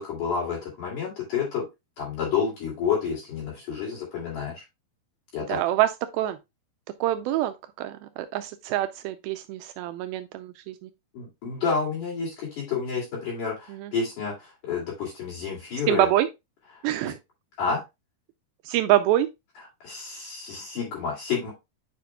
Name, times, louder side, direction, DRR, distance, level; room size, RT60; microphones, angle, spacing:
voice 1, 0.0-1.7 2.0-4.6 5.3-5.6 11.1-16.1 17.0-17.1 17.6-17.8 19.8-21.5, left 6 dB, 60° left, 3.9 m, -29 dB
voice 2, 5.5-6.4 7.0-10.9 13.7-13.9 15.9-16.3 16.8-17.2 18.7-19.3, right 14 dB, 85° right, 2.4 m, -25 dB
9.3 x 5.1 x 2.3 m
omnidirectional pair, 4.3 m